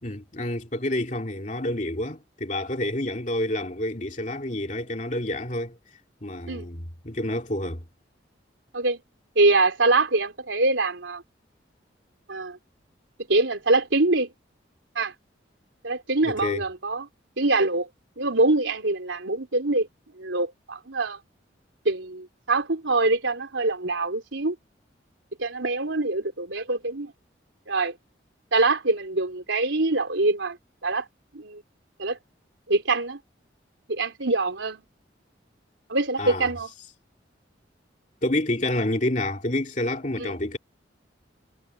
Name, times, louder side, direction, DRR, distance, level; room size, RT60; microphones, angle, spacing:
voice 1, 0.0-5.8 6.2-7.8 16.2-16.6 36.2-36.5 38.2-40.6, left 1 dB, 40° left, 2.8 m, -28 dB
voice 2, 9.4-11.2 12.3-12.6 13.3-14.3 15.0-15.1 15.8-17.1 17.4-17.9 18.2-19.9 20.2-21.2 21.9-24.6 25.4-27.1 27.7-27.9 28.5-30.6 30.8-31.0 31.3-31.6 32.0-32.2 32.7-33.2 33.9-34.8 35.9-36.7 40.2-40.4, right 2 dB, 85° right, 3.6 m, -24 dB
head